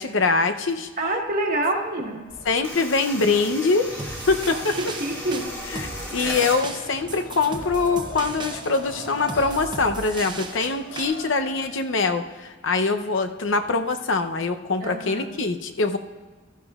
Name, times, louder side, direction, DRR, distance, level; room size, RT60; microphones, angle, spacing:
voice 1, 0.0-0.9 2.4-3.9 4.3-4.8 5.7-16.0, left 3 dB, 75° left, 7 dB, 0.7 m, -23 dB
voice 2, 1.0-2.2 4.5-4.6 5.0-5.4 6.1-6.2 14.8-15.3, right 2 dB, 40° right, 1 dB, 1.4 m, -26 dB
sound 1, 2.3-11.8, equal, 50° left, 3.2 m, -41 dB
sound 2, 2.6-6.6, equal, 10° left, 1.4 m, -35 dB
sound 3, 4.0-11.0, right 3 dB, 20° right, 0.7 m, -37 dB
15.5 x 13.0 x 2.4 m, 1.3 s
head